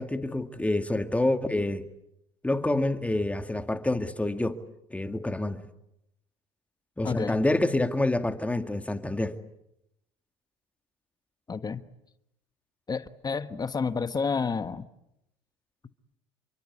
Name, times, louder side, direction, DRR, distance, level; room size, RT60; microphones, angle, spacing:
voice 1, 0.0-1.8 2.4-4.6 4.9-5.6 7.0-9.4, left 1 dB, 10° left, 2.0 m, -27 dB
voice 2, 7.0-7.4 11.5-11.8 12.9-14.8, left 5 dB, 25° left, 1.3 m, -30 dB
28.5 x 24.0 x 8.5 m
hypercardioid pair, 70°, 15 cm